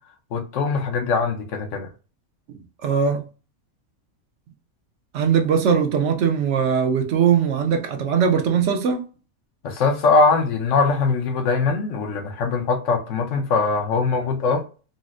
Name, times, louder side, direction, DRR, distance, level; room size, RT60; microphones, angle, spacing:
voice 1, 0.3-1.9 9.6-14.6, left 4 dB, 65° left, 1.0 m, -21 dB
voice 2, 2.5-3.2 5.1-9.0, right 7 dB, 65° right, 0.9 m, -20 dB
4.0 x 2.0 x 2.4 m
omnidirectional pair, 1.5 m